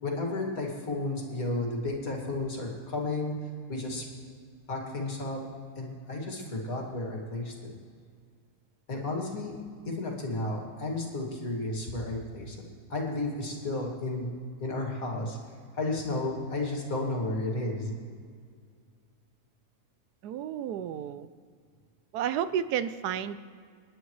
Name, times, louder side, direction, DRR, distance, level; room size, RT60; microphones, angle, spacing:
voice 1, 0.0-3.3 3.7-4.0 4.7-5.4 5.8-7.7 8.9-9.5 9.9-12.6 12.9-14.3 14.6-15.4 15.7-18.0, left 2 dB, 60° left, 0 dB, 2.6 m, -32 dB
voice 2, 20.2-21.3 22.1-23.4, right 9 dB, 85° right, 13 dB, 1.1 m, -31 dB
28.5 x 10.0 x 3.2 m, 2.1 s
omnidirectional pair, 1.7 m